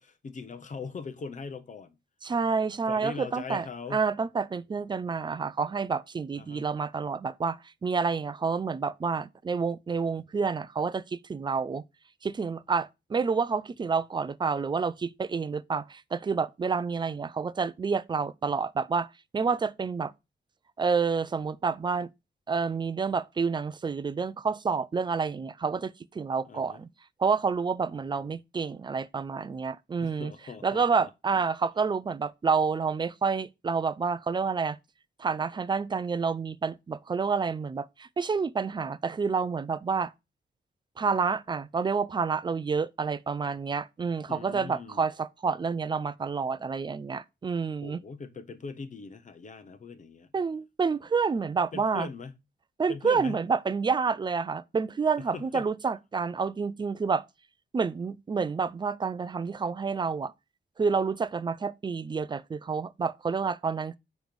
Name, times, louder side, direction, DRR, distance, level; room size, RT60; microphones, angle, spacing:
voice 1, 0.0-2.0 2.8-4.1 6.4-6.7 26.4-26.8 28.0-28.3 30.0-31.1 44.3-45.0 47.8-50.3 51.7-52.3 52.9-53.4 55.2-55.7, left 4 dB, 40° left, 0.8 m, -41 dB
voice 2, 2.2-3.7 3.9-11.8 12.2-19.1 19.3-20.1 20.8-22.1 22.5-26.9 27.2-30.3 30.6-34.8 35.2-40.1 41.0-48.0 50.3-52.1 52.8-57.2 57.7-60.3 60.8-64.0, right 5 dB, 25° right, 0.4 m, -29 dB
8.9 x 3.1 x 5.2 m
wide cardioid pair, 150°, 19 cm